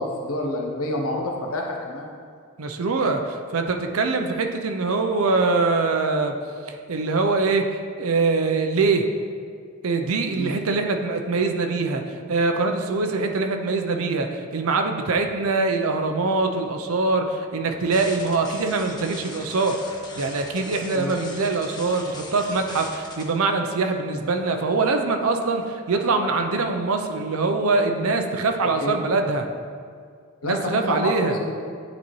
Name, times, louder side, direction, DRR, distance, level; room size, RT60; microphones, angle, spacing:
voice 1, 0.0-2.1 10.4-10.6 20.9-21.2 28.8-29.0 30.4-31.5, left 1 dB, 85° left, 1 dB, 0.9 m, -28 dB
voice 2, 2.6-6.3 6.7-7.6 8.0-9.0 9.8-19.8 20.2-29.5 30.4-31.4, right 3 dB, 80° right, 5 dB, 0.6 m, -23 dB
sound 1, 17.9-23.2, left 2 dB, 20° left, 0.7 m, -40 dB
9.5 x 4.2 x 3.1 m, 2.1 s
head